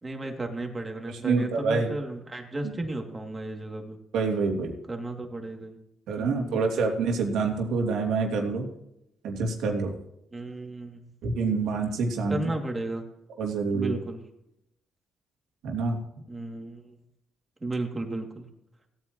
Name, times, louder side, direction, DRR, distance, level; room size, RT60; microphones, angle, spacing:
voice 1, 0.0-4.0 4.9-5.8 6.1-6.8 10.3-11.1 12.3-13.0 13.7-14.2 16.3-16.9 17.6-18.5, right 2 dB, 20° right, 2 dB, 2.6 m, -34 dB
voice 2, 1.1-1.9 4.1-4.7 6.1-8.7 9.2-9.9 11.2-12.4 13.4-14.0 15.6-16.0, right 4 dB, 80° right, 2 dB, 2.9 m, -26 dB
17.5 x 9.3 x 3.1 m, 0.81 s
cardioid pair, 90°, 0 cm